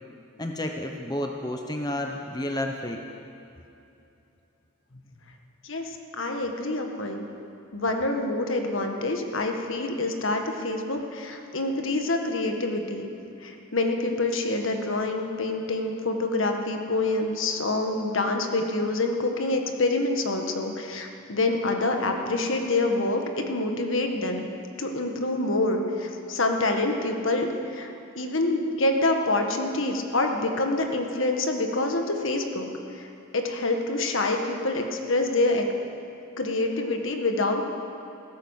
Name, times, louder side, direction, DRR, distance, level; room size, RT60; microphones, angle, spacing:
voice 1, 0.4-3.1, left 1 dB, 20° left, 3 dB, 0.8 m, -31 dB
voice 2, 6.2-7.2 7.7-13.1 13.4-24.5 24.8-27.9 28.1-32.7 33.0-33.1 33.3-35.6 36.4-37.6, left 2 dB, 65° left, 3 dB, 1.6 m, -26 dB
16.0 x 14.0 x 6.5 m, 2.8 s
head